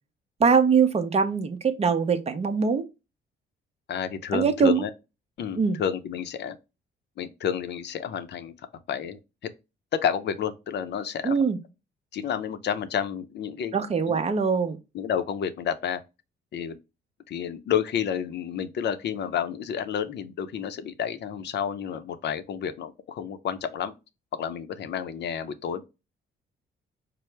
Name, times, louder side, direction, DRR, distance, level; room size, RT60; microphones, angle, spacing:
voice 1, 0.4-2.9 4.3-4.8 5.6-5.8 11.2-11.6 13.7-14.8, right 5 dB, 30° right, 0.6 m, -22 dB
voice 2, 3.9-4.9 5.4-6.6 7.2-8.5 8.9-9.2 10.0-11.4 12.1-13.8 14.1-14.2 14.9-16.0 16.5-16.8 17.3-23.9 24.3-25.8, left 8 dB, 60° left, 0.5 m, -30 dB
4.4 x 2.0 x 3.2 m
cardioid pair, 90°, 20 cm